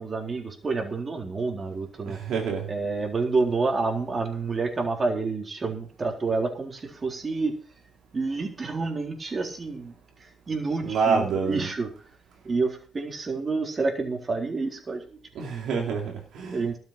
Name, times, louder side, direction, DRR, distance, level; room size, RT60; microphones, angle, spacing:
voice 1, 0.0-2.2 2.7-7.6 8.1-9.9 10.5-11.9 12.4-15.0 16.5-16.8, right 3 dB, 35° right, 3.9 m, -28 dB
voice 2, 2.0-2.7 10.8-11.7 15.3-16.8, right 5 dB, 80° right, 3.2 m, -27 dB
13.0 x 7.5 x 6.6 m
cardioid pair, 90°, 0 cm